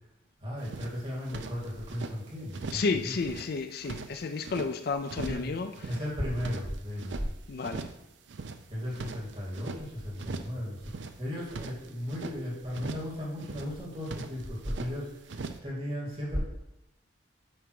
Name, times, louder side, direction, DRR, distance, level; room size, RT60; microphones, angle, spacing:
voice 1, 0.4-3.2 5.2-5.5 5.9-7.3 8.7-16.4, equal, 30° right, -6 dB, 2.6 m, -35 dB
sound 1, 0.6-2.1 2.5-2.9 3.2-4.7 5.1-5.5 5.7-7.3 7.6-8.0 8.3-9.8 10.2-10.6 10.8-12.4 12.7-13.1 13.4-14.9 15.3-15.6, right 4 dB, 70° right, 0.5 m, -40 dB
voice 2, 2.7-5.7 7.5-7.9, left 4 dB, 55° left, 9 dB, 0.4 m, -31 dB
8.7 x 3.4 x 4.8 m, 0.86 s
head